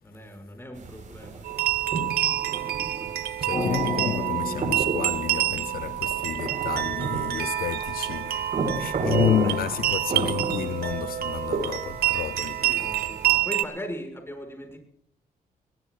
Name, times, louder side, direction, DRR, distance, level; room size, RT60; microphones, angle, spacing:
voice 1, 0.0-1.5 9.4-9.6 12.6-14.8, equal, 15° left, 6.1 m, -38 dB
sound 1, 0.7-13.4, right 3 dB, 55° right, 4.2 m, -33 dB
sound 2, 1.4-13.6, right 13 dB, 85° right, 1.1 m, -28 dB
voice 2, 3.4-13.1, left 11 dB, 70° left, 0.5 m, -31 dB
sound 3, 3.5-7.7, left 3 dB, 40° left, 7.2 m, -34 dB
21.5 x 19.0 x 2.4 m
cardioid pair, 80°, 15 cm